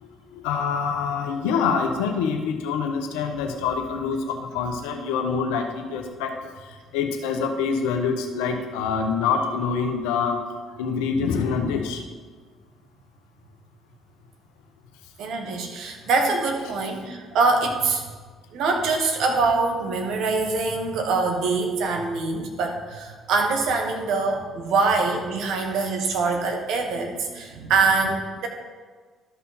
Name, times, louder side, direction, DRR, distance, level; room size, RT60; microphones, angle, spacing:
voice 1, 0.0-10.4 10.8-12.0, left 5 dB, 75° left, 5 dB, 0.9 m, -26 dB
voice 2, 15.2-18.0 18.5-28.5, right 4 dB, 65° right, 3 dB, 1.4 m, -24 dB
12.5 x 5.6 x 4.2 m, 1.4 s
hypercardioid pair, 50°, 0 cm